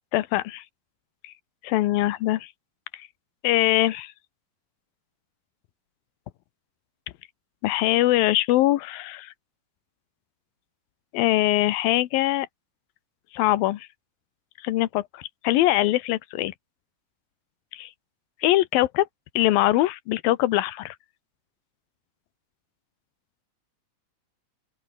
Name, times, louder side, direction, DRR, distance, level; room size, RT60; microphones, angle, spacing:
voice 1, 0.1-0.6 1.2-1.3 1.6-2.5 2.9-3.0 3.4-4.1 7.6-9.3 11.1-12.5 13.3-13.9 14.6-16.5 17.7-17.9 18.4-19.1 19.4-21.0, left 16 dB, 90° left, 2.8 m, -22 dB
open air
omnidirectional pair, 4.1 m